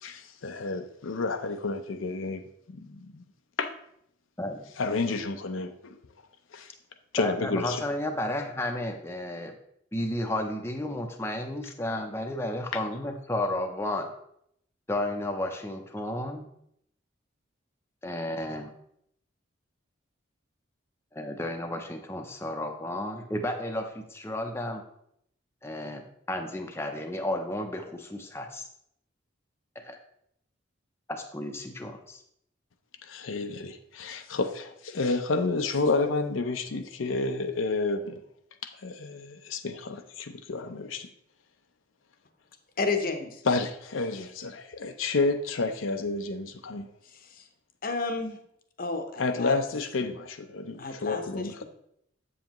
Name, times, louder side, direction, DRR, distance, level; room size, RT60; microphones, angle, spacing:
voice 1, 0.0-2.4 2.7-3.2 3.6-3.7 4.8-6.0 6.5-6.7 7.1-7.9 12.7-12.8 33.0-38.2 38.8-41.1 43.4-46.9 49.2-51.6, left 3 dB, 85° left, 7 dB, 0.6 m, -30 dB
voice 2, 7.2-9.6 9.9-14.1 14.9-16.5 18.0-18.7 21.1-24.8 25.6-28.7 29.8-30.0 31.1-32.2, left 1 dB, 15° left, 3 dB, 0.6 m, -32 dB
voice 3, 42.8-43.4 47.1-47.4 47.8-48.4 48.8-49.6 50.8-51.6, left 3 dB, 45° left, 6 dB, 0.8 m, -32 dB
7.7 x 7.4 x 3.0 m, 0.73 s
head